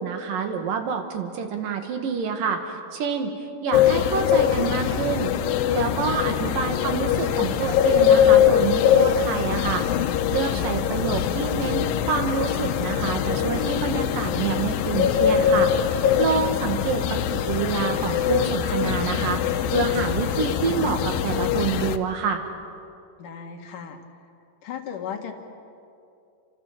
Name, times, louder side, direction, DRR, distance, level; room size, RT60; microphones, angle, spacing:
voice 1, 0.0-5.3 5.7-22.5, right 6 dB, 75° right, 5 dB, 3.5 m, -27 dB
sound 1, 3.7-22.0, left 9 dB, 90° left, 2.7 m, -22 dB
voice 2, 23.2-24.0 24.6-25.3, left 7 dB, 70° left, 4 dB, 3.2 m, -36 dB
28.5 x 26.0 x 7.4 m, 2.6 s
omnidirectional pair, 4.0 m